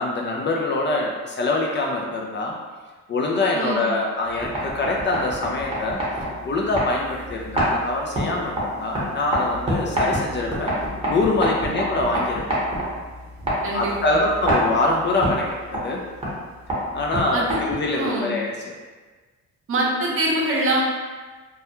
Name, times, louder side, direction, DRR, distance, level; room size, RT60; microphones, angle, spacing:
voice 1, 0.0-2.6 3.1-6.0 6.4-10.8 11.1-12.6 13.7-16.0 16.9-18.6, left 2 dB, 40° left, -1 dB, 0.4 m, -24 dB
voice 2, 3.5-3.8 11.6-11.7 13.6-14.2 17.3-17.6 17.9-18.3 19.7-20.8, right 1 dB, 45° right, -3 dB, 0.7 m, -24 dB
sound 1, 4.3-18.0, equal, 20° right, 0.9 m, -28 dB
2.3 x 2.1 x 2.9 m, 1.3 s
cardioid pair, 90°, 30 cm